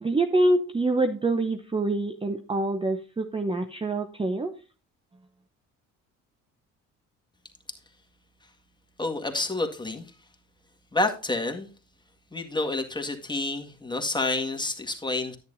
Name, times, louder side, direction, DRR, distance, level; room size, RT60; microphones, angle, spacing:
voice 1, 0.0-4.6, right 2 dB, 15° right, 7 dB, 0.8 m, -25 dB
voice 2, 9.0-10.1 10.9-11.7 12.3-15.4, left 2 dB, 10° left, 4 dB, 1.8 m, -29 dB
10.0 x 9.0 x 2.6 m, 0.35 s
supercardioid pair, 60°, 37 cm